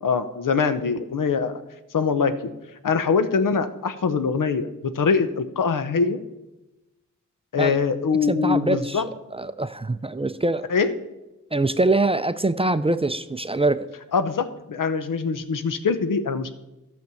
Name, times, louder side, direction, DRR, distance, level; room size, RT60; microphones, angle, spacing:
voice 1, 0.0-1.5 1.9-2.5 2.8-4.7 4.9-6.2 7.5-9.0 10.7-10.9 14.1-16.5, left 5 dB, 75° left, 11 dB, 0.9 m, -23 dB
voice 2, 8.3-10.6 11.5-13.9, right 2 dB, 20° right, 12 dB, 0.5 m, -24 dB
12.0 x 6.4 x 7.0 m, 1.0 s
cardioid pair, 65°, 33 cm